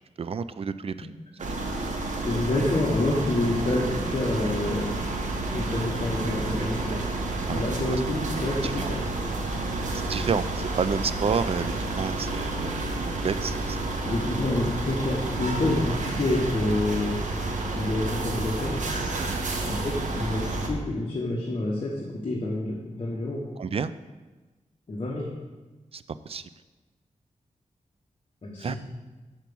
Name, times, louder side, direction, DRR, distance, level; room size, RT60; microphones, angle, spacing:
voice 1, 0.2-1.1 1.5-1.6 7.4-8.0 8.6-8.9 9.9-12.7 13.2-13.8 15.9-16.0 19.2-19.4 23.6-23.9 25.9-26.5 28.6-28.8, right 6 dB, 50° right, 13 dB, 0.4 m, -30 dB
sound 1, 1.4-20.7, right 2 dB, 75° right, 1.1 m, -30 dB
voice 2, 2.2-4.9 5.5-6.9 7.5-9.0 14.0-17.2 17.7-18.8 19.6-23.4 24.9-25.3 28.4-28.8, left 2 dB, 45° left, -4 dB, 1.3 m, -28 dB
6.0 x 5.8 x 6.9 m, 1.2 s
wide cardioid pair, 120°, 13 cm